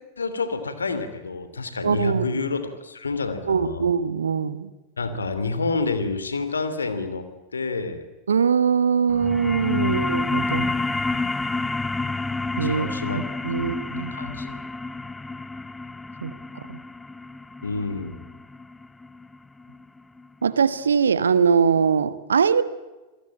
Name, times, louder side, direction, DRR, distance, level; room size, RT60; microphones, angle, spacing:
voice 1, 0.2-3.8 5.0-7.3 7.5-8.1 9.7-10.1 12.6-13.2 13.6-13.8 14.1-14.6 17.6-18.2, left 3 dB, 75° left, 10 dB, 2.8 m, -29 dB
voice 2, 1.8-2.4 3.4-4.7 8.3-10.7 12.6-12.9 13.1-14.1 16.2-16.8 20.4-22.6, right 6 dB, 70° right, 14 dB, 1.3 m, -22 dB
sound 1, 9.1-20.2, left 3 dB, 10° left, 0.8 m, -29 dB
27.5 x 19.5 x 8.7 m, 1.1 s
figure-of-eight pair, 90°, 0 cm